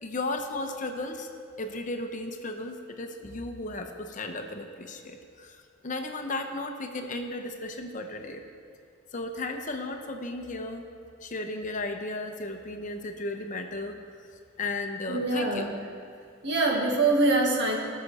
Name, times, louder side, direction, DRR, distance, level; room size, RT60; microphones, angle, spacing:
voice 1, 0.0-1.3 1.6-8.4 9.1-10.9 11.2-14.0 14.6-15.7, left 2 dB, 40° left, 5 dB, 0.8 m, -35 dB
voice 2, 15.1-15.7 16.4-17.8, right 2 dB, 60° right, 0 dB, 1.7 m, -24 dB
19.0 x 6.6 x 4.2 m, 2.2 s
head